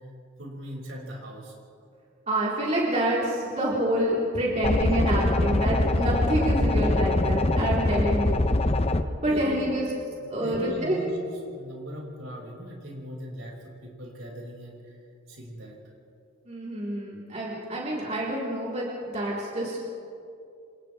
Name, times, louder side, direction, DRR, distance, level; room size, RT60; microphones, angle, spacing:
voice 1, 0.4-1.5 9.2-9.7 10.2-11.2 11.5-15.0 15.3-15.8, equal, 75° right, -2 dB, 6.0 m, -39 dB
voice 2, 2.3-8.7 9.2-9.9 10.3-10.9 16.5-20.0, right 1 dB, 35° right, -6 dB, 4.1 m, -27 dB
sound 1, 4.6-9.0, left 2 dB, 30° left, 0.8 m, -23 dB
28.0 x 27.0 x 3.5 m, 2.5 s
head